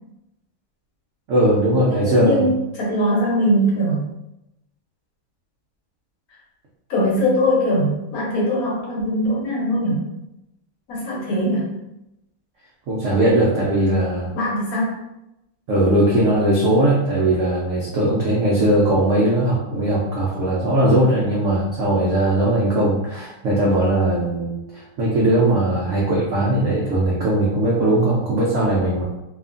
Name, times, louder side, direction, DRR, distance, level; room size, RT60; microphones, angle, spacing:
voice 1, 1.3-2.5 12.9-14.3 15.7-29.0, right 1 dB, 85° right, -5 dB, 0.6 m, -19 dB
voice 2, 1.9-4.0 6.9-10.1 10.9-11.7 14.3-14.9, equal, 60° left, -4 dB, 1.1 m, -21 dB
2.8 x 2.4 x 2.4 m, 0.89 s
omnidirectional pair, 2.0 m